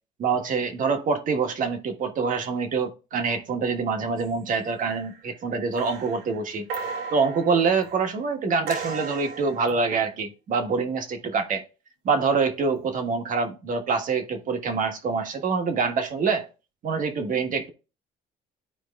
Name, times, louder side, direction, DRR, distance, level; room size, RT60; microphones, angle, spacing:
voice 1, 0.2-11.6 12.0-16.5 16.8-17.7, right 5 dB, 50° right, 1.3 m, -25 dB
sound 1, 4.2-4.5 4.8-5.3 5.7-8.1 8.7-9.8 12.8-13.0, right 5 dB, 90° right, 2.3 m, -37 dB
12.5 x 4.5 x 2.4 m
cardioid pair, 110°, 17 cm